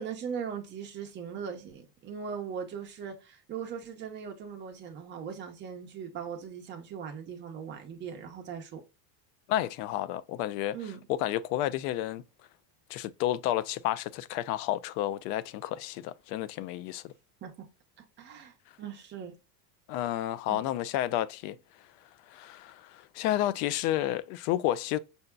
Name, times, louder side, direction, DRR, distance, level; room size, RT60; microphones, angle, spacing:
voice 1, 0.0-8.8 10.7-11.0 17.4-17.7 18.2-19.3 20.5-20.7, right 7 dB, 25° right, 0.7 m, -39 dB
voice 2, 9.5-10.8 11.1-12.2 12.9-17.1 19.9-21.6 22.3-25.0, left 13 dB, 85° left, 0.6 m, -31 dB
5.5 x 2.7 x 2.3 m
cardioid pair, 170°, 46 cm